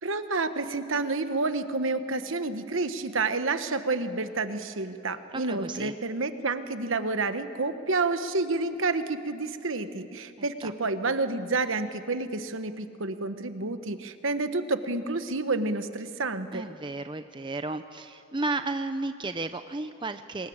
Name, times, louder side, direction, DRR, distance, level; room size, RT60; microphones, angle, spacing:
voice 1, 0.0-16.6, right 3 dB, 60° right, 10 dB, 1.2 m, -29 dB
voice 2, 5.3-5.9 10.4-10.7 16.5-20.5, right 3 dB, 20° right, 9 dB, 0.6 m, -33 dB
25.5 x 20.5 x 8.7 m, 2.6 s
head